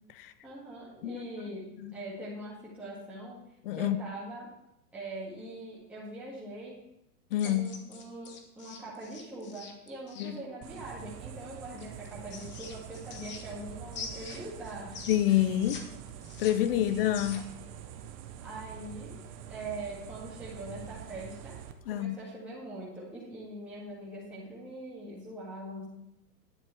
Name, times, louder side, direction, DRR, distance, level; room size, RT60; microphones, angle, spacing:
voice 1, 0.4-1.6 1.9-3.4 3.7-4.5 4.9-6.8 7.4-15.0 18.4-19.2 19.5-21.6 21.9-25.9, right 1 dB, 5° right, 2.0 m, -42 dB
voice 2, 3.6-4.0 7.3-7.7 10.2-10.4 15.1-15.8 16.4-17.5 21.9-22.2, left 12 dB, 40° left, 0.5 m, -27 dB
sound 1, 7.3-10.3 11.8-13.6 13.9-15.8 16.1-17.6, left 5 dB, 20° left, 1.1 m, -44 dB
sound 2, 10.6-21.7, right 9 dB, 25° right, 0.6 m, -45 dB
10.0 x 7.4 x 4.5 m
hypercardioid pair, 140°, 49 cm